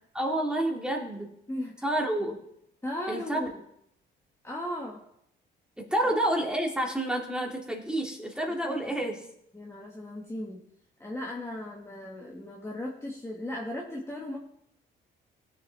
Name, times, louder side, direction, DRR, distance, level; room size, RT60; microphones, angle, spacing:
voice 1, 0.1-1.3 1.8-2.4 3.1-3.4 5.8-9.3, right 1 dB, 5° right, 0 dB, 2.3 m, -29 dB
voice 2, 1.5-1.8 2.8-3.6 4.4-5.0 8.7-9.0 9.5-10.6 11.0-14.4, left 1 dB, 15° left, -2 dB, 1.6 m, -36 dB
18.0 x 7.1 x 3.4 m, 0.76 s
cardioid pair, 90°, 20 cm